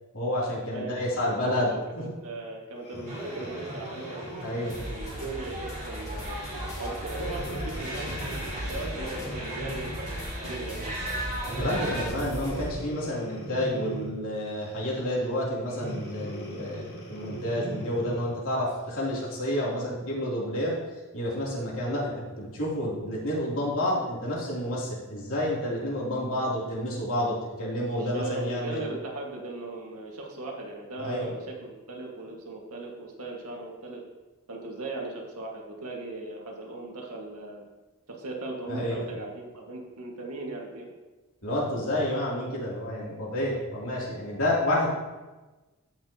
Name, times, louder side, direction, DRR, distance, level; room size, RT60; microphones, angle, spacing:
voice 1, 0.1-1.7 4.4-4.8 11.6-20.8 21.1-28.9 31.0-31.3 38.7-39.0 41.4-44.9, left 1 dB, 65° left, -5 dB, 3.0 m, -29 dB
voice 2, 1.2-4.4 4.9-10.0 10.4-11.2 27.9-34.0 34.5-37.6 38.1-40.9, right 2 dB, 80° right, -1 dB, 1.9 m, -38 dB
Breathing, 2.8-5.4 6.1-6.3 7.1-10.0 11.4-14.3 15.7-18.4 19.0-19.1, equal, 45° left, 2.0 m, -40 dB
sound 1, 3.1-12.1, right 1 dB, 35° right, 3.3 m, -37 dB
sound 2, 4.7-12.7, equal, 15° left, 2.5 m, -38 dB
15.0 x 5.9 x 2.9 m, 1.2 s
head